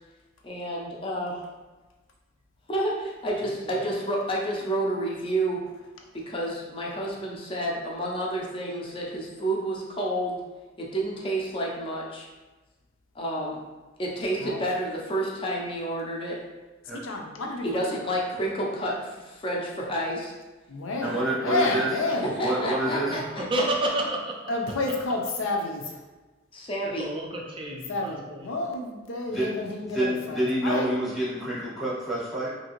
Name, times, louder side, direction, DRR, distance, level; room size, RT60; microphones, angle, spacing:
voice 1, 0.4-1.4 2.7-5.6 6.1-10.4 10.8-12.3 13.1-13.6 14.0-16.4 17.6-20.3 21.0-21.1 22.2-23.7 26.5-27.1, right 1 dB, 25° left, -2 dB, 0.5 m, -30 dB
voice 2, 3.5-3.8 22.9-24.5 26.8-28.4, right 1 dB, 25° right, -1 dB, 0.4 m, -31 dB
voice 3, 17.0-17.8 20.7-22.3 24.5-26.0 27.9-30.9, left 2 dB, 80° left, 1 dB, 0.5 m, -30 dB
voice 4, 21.0-21.9 22.2-23.2 29.3-29.5 29.9-32.5, right 1 dB, ahead, -9 dB, 0.8 m, -27 dB
2.9 x 2.6 x 2.9 m, 1.2 s
head